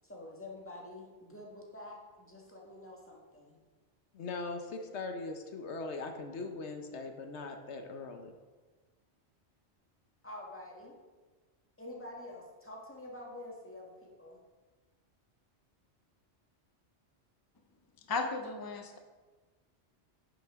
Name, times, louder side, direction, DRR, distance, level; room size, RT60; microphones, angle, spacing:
voice 1, 0.0-3.6 10.2-11.0 11.8-14.4, left 1 dB, 10° left, -2 dB, 1.6 m, -47 dB
voice 2, 4.1-8.3, left 3 dB, 70° left, 5 dB, 1.1 m, -40 dB
voice 3, 18.1-19.0, left 3 dB, 35° left, 5 dB, 0.4 m, -35 dB
10.5 x 7.3 x 3.6 m, 1.3 s
omnidirectional pair, 1.2 m